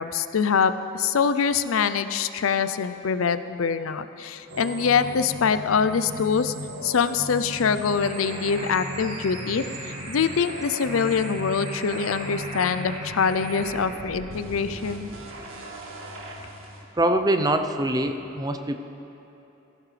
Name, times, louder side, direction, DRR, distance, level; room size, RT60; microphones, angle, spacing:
voice 1, 0.0-6.5 6.8-15.1, left 6 dB, 85° left, 12 dB, 0.5 m, -24 dB
sound 1, 4.5-16.8, equal, 80° right, 1.9 m, -38 dB
sound 2, 8.0-13.8, right 1 dB, 35° right, 3.7 m, -39 dB
voice 2, 17.0-18.8, right 1 dB, 20° right, 7 dB, 0.6 m, -23 dB
18.5 x 15.0 x 3.3 m, 3.0 s
head